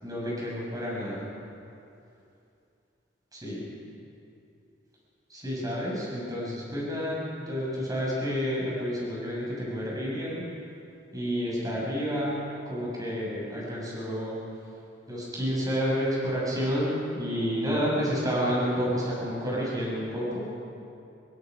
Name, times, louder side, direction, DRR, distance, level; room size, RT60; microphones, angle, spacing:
voice 1, 0.0-1.3 3.3-3.7 5.3-10.4 11.1-14.4 15.1-20.6, equal, 20° right, -5 dB, 7.2 m, -30 dB
26.5 x 23.0 x 5.4 m, 2.6 s
head